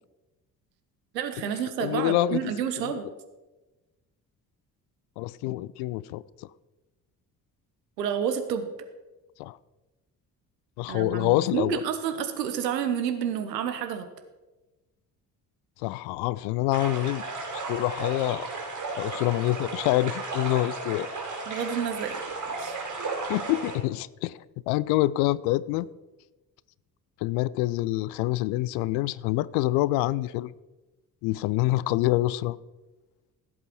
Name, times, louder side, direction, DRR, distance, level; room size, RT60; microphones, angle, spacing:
voice 1, 1.1-3.1 8.0-8.7 10.9-14.1 21.5-22.2 22.6-22.7, right 8 dB, 75° right, 1.1 m, -29 dB
voice 2, 1.8-2.5 2.8-3.0 5.2-6.2 9.4-9.6 10.8-11.8 15.8-17.2 17.7-18.5 19.0-21.1 23.3-24.4 24.7-25.9 27.2-30.5 31.2-32.6, left 16 dB, 55° left, 0.5 m, -26 dB
sound 1, 16.7-23.8, right 3 dB, 35° right, 5.1 m, -34 dB
16.0 x 7.9 x 4.6 m
figure-of-eight pair, 45°, 49 cm